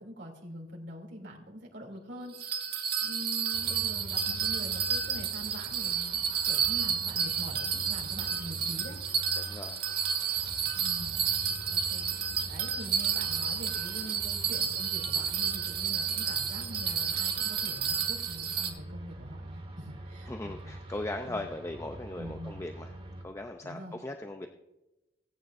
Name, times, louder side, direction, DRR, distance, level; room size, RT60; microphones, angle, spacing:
voice 1, 0.0-9.0 10.8-11.2 11.7-12.1 12.5-20.7 21.2-21.5 22.2-22.6 23.6-23.9, equal, 85° right, -1 dB, 2.8 m, -44 dB
Bell, 2.3-18.7, right 7 dB, 60° right, 1.6 m, -31 dB
sound 1, 3.5-23.2, right 1 dB, 35° right, 2.6 m, -45 dB
voice 2, 9.4-9.8 10.6-10.7 20.3-22.9 23.2-24.5, left 2 dB, 15° left, 5 dB, 0.5 m, -38 dB
19.0 x 9.5 x 2.6 m, 0.99 s
head